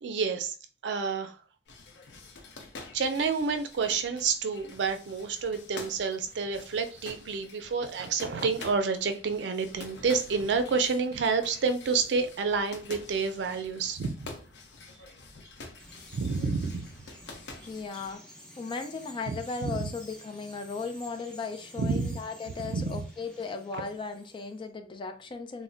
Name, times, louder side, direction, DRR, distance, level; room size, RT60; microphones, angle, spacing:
voice 1, 0.0-0.5 0.8-1.4 2.9-14.3 16.1-16.9 19.3-19.8 21.8-22.2 22.6-22.9, right 5 dB, 85° right, 0.4 m, -29 dB
sound 1, 1.7-18.2, left 3 dB, 75° left, 0.6 m, -48 dB
Bird vocalization bird call bird song, 15.8-24.7, left 1 dB, 5° left, 0.7 m, -51 dB
voice 2, 17.7-18.2 18.6-25.6, left 4 dB, 30° left, 0.3 m, -37 dB
2.1 x 2.0 x 3.7 m
head